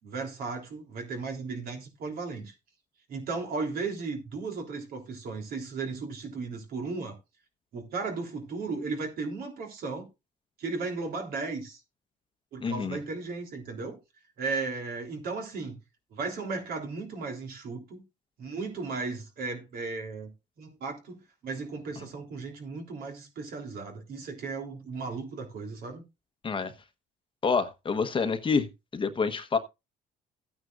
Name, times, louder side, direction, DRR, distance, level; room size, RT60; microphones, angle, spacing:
voice 1, 0.0-2.5 3.1-7.2 7.7-10.1 10.6-11.8 12.5-14.0 14.4-15.8 16.1-18.0 18.4-20.3 20.6-26.0, right 4 dB, 65° right, 3.4 m, -35 dB
voice 2, 12.6-13.0 26.4-26.7 27.4-29.6, left 5 dB, 30° left, 1.1 m, -28 dB
14.5 x 9.4 x 2.5 m
cardioid pair, 110°, 17 cm